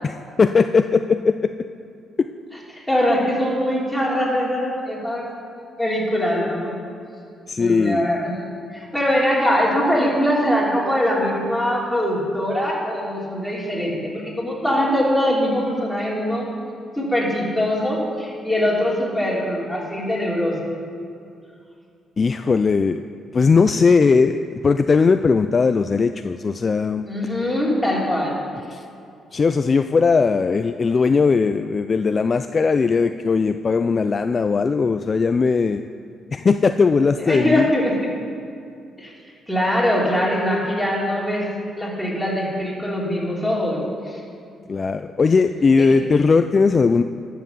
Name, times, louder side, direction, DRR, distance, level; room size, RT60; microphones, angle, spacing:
voice 1, 0.0-1.5 7.5-8.1 22.2-23.0 23.3-27.1 28.7-28.8 29.3-35.9 36.3-37.7 44.7-47.0, left 4 dB, 35° left, 9 dB, 0.3 m, -18 dB
voice 2, 2.7-5.2 5.8-6.8 7.6-8.4 8.7-16.5 17.0-20.6 27.0-28.4 37.2-38.1 39.0-39.1 39.5-41.5 41.8-44.2 45.8-46.0, equal, ahead, -5 dB, 3.2 m, -22 dB
12.0 x 5.9 x 6.9 m, 2.5 s
cardioid pair, 90°, 0 cm